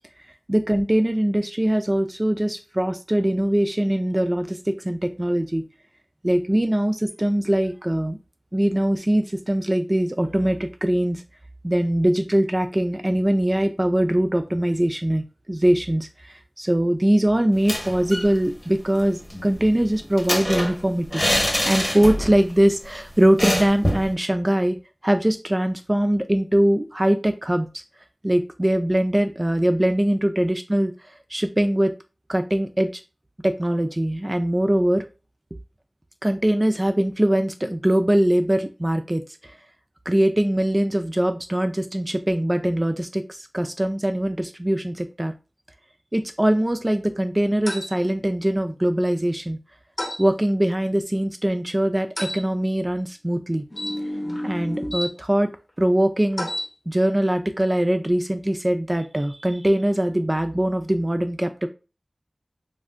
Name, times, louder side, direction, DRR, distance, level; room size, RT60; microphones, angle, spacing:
voice 1, 0.5-5.7 6.2-8.2 8.5-11.2 11.6-21.2 21.7-24.8 25.0-27.8 28.2-30.9 31.3-31.9 32.3-33.0 33.4-35.0 36.2-39.2 40.1-45.3 46.1-49.6 50.2-53.6 54.4-55.5 55.8-56.5 56.9-61.7, right 1 dB, 25° right, 7 dB, 0.3 m, -22 dB
sound 1, 17.5-18.3 18.6-18.7 19.0-22.5 22.7-22.9 23.4-24.1, equal, 10° left, 0.9 m, -25 dB
sound 2, 47.7-47.9 50.0-50.2 52.2-52.4 53.7-55.1 56.3-56.7, left 1 dB, 70° left, 0.8 m, -29 dB
3.2 x 2.5 x 2.5 m, 0.32 s
wide cardioid pair, 50°, 0 cm